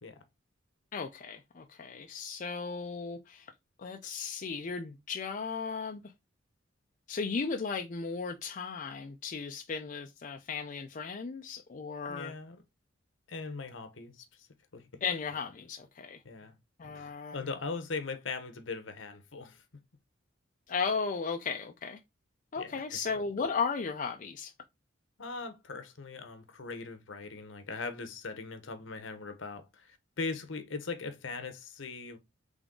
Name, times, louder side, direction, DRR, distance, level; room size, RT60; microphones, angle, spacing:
voice 1, 0.9-3.5 3.8-6.0 7.1-12.3 15.0-16.2 16.8-17.5 20.7-22.0 22.5-24.5, left 5 dB, 40° left, 0.4 m, -35 dB
voice 2, 12.1-12.6 13.3-14.5 14.7-15.0 16.2-16.5 16.9-19.6 22.6-22.8 25.2-32.2, left 4 dB, 70° left, 0.9 m, -40 dB
3.8 x 3.4 x 3.6 m
head